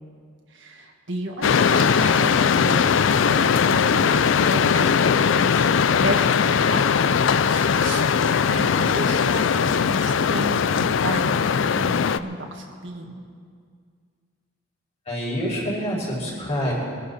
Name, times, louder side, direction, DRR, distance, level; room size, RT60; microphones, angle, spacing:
voice 1, 0.5-7.1 7.5-8.1 8.5-13.2, right 1 dB, 60° right, 1 dB, 1.6 m, -33 dB
sound 1, 1.4-12.2, left 6 dB, 65° left, 0.4 m, -20 dB
voice 2, 15.0-16.7, equal, 30° left, -5 dB, 5.0 m, -26 dB
23.0 x 11.5 x 4.2 m, 2.1 s
head